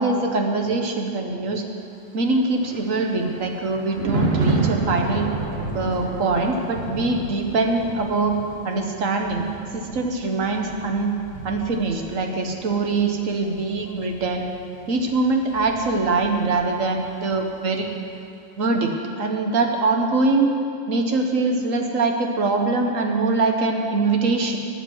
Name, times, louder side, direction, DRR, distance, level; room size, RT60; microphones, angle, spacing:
voice 1, 0.0-1.6 2.1-5.3 5.7-8.3 8.6-9.5 9.7-11.1 11.4-14.5 14.9-17.9 18.6-20.5 20.9-24.6, right 3 dB, 85° right, 3 dB, 1.7 m, -23 dB
Thunder, 2.2-16.8 17.1-17.4, right 2 dB, 50° right, 1.8 m, -31 dB
12.0 x 8.9 x 8.0 m, 2.5 s
omnidirectional pair, 1.3 m